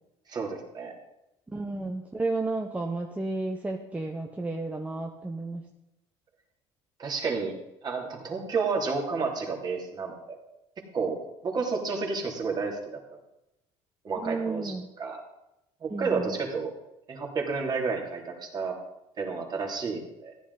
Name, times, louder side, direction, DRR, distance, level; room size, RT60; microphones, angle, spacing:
voice 1, 0.3-0.9 7.0-7.5 7.8-10.4 10.9-11.2 11.4-13.0 14.0-15.2 15.8-16.7 17.1-18.8 19.2-20.3, right 4 dB, 35° right, 1 dB, 3.0 m, -31 dB
voice 2, 1.5-5.6 14.2-14.9 15.9-16.4, right 2 dB, 10° right, 2 dB, 1.0 m, -32 dB
14.5 x 10.5 x 4.0 m, 0.89 s
cardioid pair, 110°, 12 cm